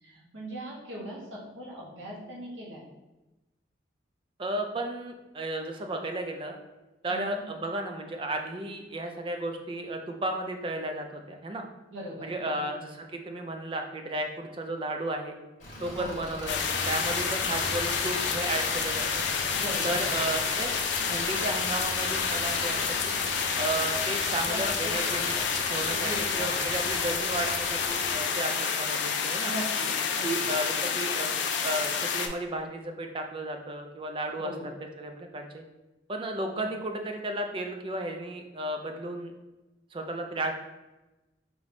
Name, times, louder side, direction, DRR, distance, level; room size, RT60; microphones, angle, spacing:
voice 1, 0.0-2.8 7.1-7.4 11.9-12.6 16.0-16.3 19.5-20.0 24.5-25.4 25.9-26.5 29.4-29.9 30.1-30.5 34.4-34.7 36.5-36.6, equal, 90° right, -3 dB, 1.1 m, -39 dB
voice 2, 4.4-6.6 7.0-11.7 12.2-15.4 15.8-19.2 19.8-20.7 21.1-22.8 23.0-23.1 23.6-25.2 25.7-26.1 26.4-29.5 30.2-31.4 31.6-34.5 35.0-35.6 36.1-39.3 39.9-40.5, right 1 dB, 30° right, 4 dB, 0.4 m, -33 dB
Engine, 15.6-28.1, left 1 dB, 40° left, 1.4 m, -37 dB
sound 1, 16.5-32.3, left 6 dB, 75° left, 0.4 m, -29 dB
4.9 x 3.0 x 2.6 m, 1.1 s
head